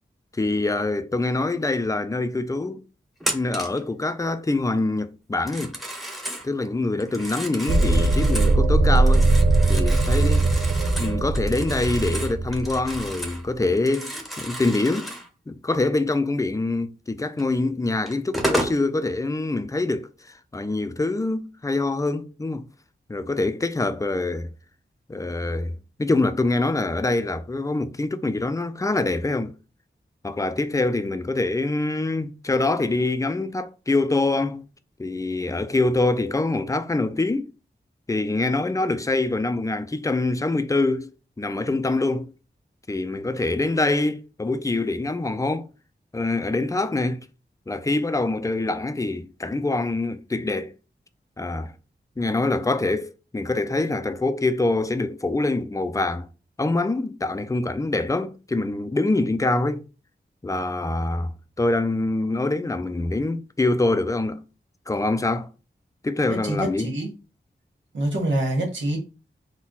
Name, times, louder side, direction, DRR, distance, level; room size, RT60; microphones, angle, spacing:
voice 1, 0.3-2.8 3.3-5.8 6.4-9.3 9.7-10.5 11.0-15.1 15.5-20.1 20.5-22.7 23.1-24.5 25.1-29.5 30.2-34.7 35.0-37.5 38.1-42.3 42.9-45.7 46.1-47.3 47.7-50.7 51.4-51.7 52.2-56.3 56.6-59.9 60.4-61.3 61.6-64.4 64.9-65.5 66.0-66.9, left 2 dB, 15° left, 0.5 m, -25 dB
Telephone, 3.2-3.8 5.3-6.5 7.0-8.6 9.0-13.4 13.7-15.3 17.4-17.5 18.1-18.8, equal, ahead, 0.9 m, -32 dB
sound 1, 7.7-13.1, right 2 dB, 60° right, 0.7 m, -20 dB
voice 2, 66.4-67.1 67.9-69.0, right 1 dB, 85° right, 1.6 m, -25 dB
4.2 x 2.3 x 4.0 m
wide cardioid pair, 60°, 19 cm